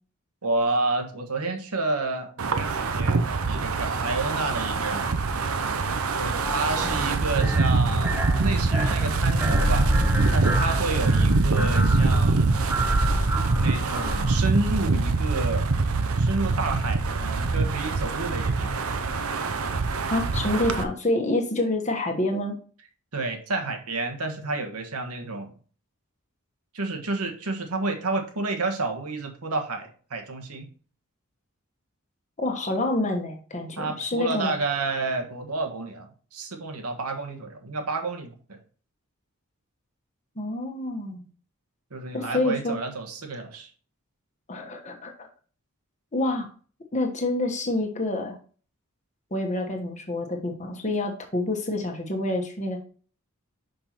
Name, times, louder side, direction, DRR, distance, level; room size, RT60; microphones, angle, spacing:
voice 1, 0.4-5.2 6.2-9.9 10.3-12.5 13.6-15.7 16.2-18.9 23.1-25.5 26.7-30.7 33.8-38.6 41.9-43.7, right 3 dB, 90° right, 4 dB, 1.4 m, -30 dB
Wind, 2.4-20.8, right 3 dB, 75° right, 0.7 m, -24 dB
sound 1, 6.4-14.5, equal, 10° right, 0.7 m, -27 dB
voice 2, 20.1-22.6 32.4-34.5 40.4-41.2 42.1-42.8 44.5-45.3 46.1-46.5 46.9-48.4 49.3-52.8, left 2 dB, 30° left, 3 dB, 1.2 m, -27 dB
5.7 x 5.3 x 4.3 m, 0.41 s
head